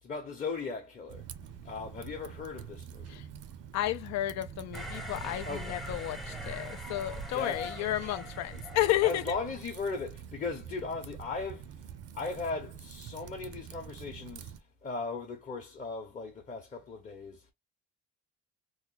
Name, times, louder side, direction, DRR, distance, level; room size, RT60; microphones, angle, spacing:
voice 1, 0.0-1.3 1.6-3.1 5.5-5.7 7.3-7.6 9.0-11.8 12.1-14.5 14.8-17.5, left 4 dB, 25° left, 0.8 m, -37 dB
Typing, 1.1-14.6, right 8 dB, 55° right, 0.6 m, -46 dB
voice 2, 3.7-9.2, left 14 dB, 70° left, 0.5 m, -32 dB
sound 1, 4.7-9.5, right 1 dB, ahead, 0.5 m, -42 dB
3.0 x 2.2 x 3.9 m
cardioid pair, 165°, 29 cm